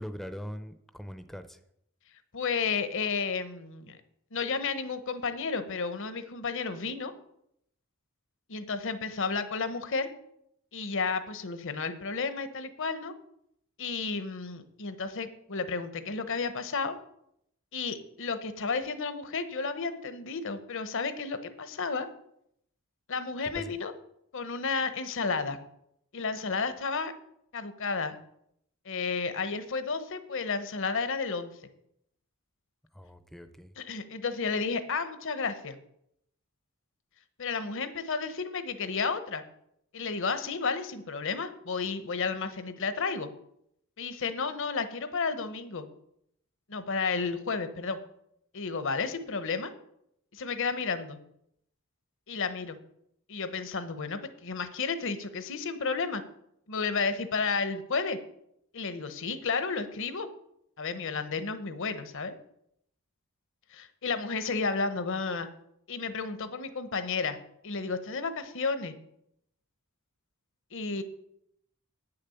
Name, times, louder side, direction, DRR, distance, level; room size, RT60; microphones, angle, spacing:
voice 1, 0.0-1.6 23.5-23.7 32.9-33.7, equal, ahead, 9 dB, 0.6 m, -41 dB
voice 2, 2.3-4.0 4.3-7.1 8.5-10.1 10.7-13.1 13.8-16.9 17.7-22.1 23.1-23.9 24.3-25.6 26.1-27.1 27.5-28.1 28.8-31.5 33.8-35.7 37.4-39.4 39.9-43.3 44.0-45.9 46.7-48.0 48.5-49.7 50.3-51.2 52.3-52.8 53.3-56.2 56.7-58.2 58.7-60.3 60.8-62.3 63.7-65.5 65.9-67.4 67.6-68.9 70.7-71.0, left 4 dB, 60° left, 11 dB, 1.0 m, -32 dB
9.1 x 6.8 x 7.0 m, 0.74 s
head